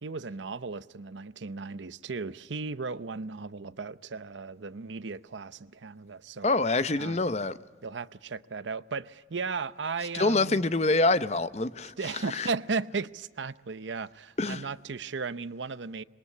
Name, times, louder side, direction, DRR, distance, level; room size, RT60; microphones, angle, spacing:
voice 1, 0.0-6.5 7.0-7.2 7.8-10.6 11.8-16.0, right 4 dB, 85° right, 0.7 m, -36 dB
voice 2, 6.4-7.5 10.1-11.9 12.3-12.5 14.4-14.7, left 2 dB, 35° left, 0.8 m, -26 dB
26.5 x 22.0 x 8.4 m
head